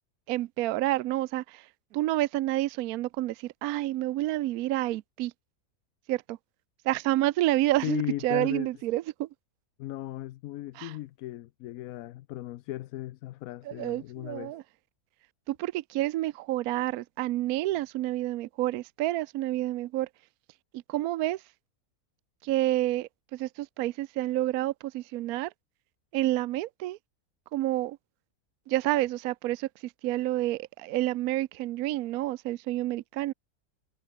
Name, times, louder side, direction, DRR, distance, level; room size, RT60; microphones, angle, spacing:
voice 1, 0.3-5.3 6.1-6.4 6.8-9.3 10.7-11.0 13.6-14.6 15.5-20.1 20.7-21.4 22.4-25.5 26.1-27.0 27.5-28.0 28.7-33.3, right 15 dB, 75° right, 1.0 m, -29 dB
voice 2, 7.8-8.7 9.8-14.5, left 15 dB, 75° left, 1.0 m, -36 dB
omnidirectional pair, 1.6 m